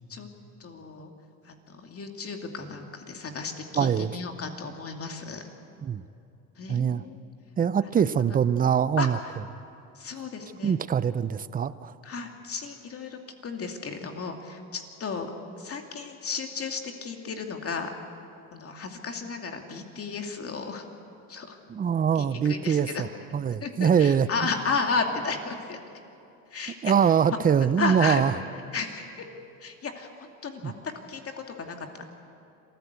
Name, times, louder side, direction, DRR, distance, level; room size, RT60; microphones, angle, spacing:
voice 1, 0.6-1.1 1.4-5.5 6.6-7.2 7.9-8.2 9.0-9.4 9.9-10.8 12.0-15.3 15.6-17.9 18.5-20.8 21.3-21.6 22.1-23.0 23.6-25.8 26.5-27.1 27.8-28.2 28.7-29.2 29.6-30.7 31.1-32.1, left 4 dB, 30° left, 4 dB, 2.5 m, -34 dB
voice 2, 3.8-4.1 5.8-6.0 6.7-7.0 7.6-9.2 10.6-11.9 21.7-23.1 23.3-24.3 26.8-28.3 30.6-30.7, right 7 dB, 20° right, 16 dB, 0.5 m, -23 dB
26.5 x 14.5 x 8.2 m, 2.7 s
supercardioid pair, 105°, 43 cm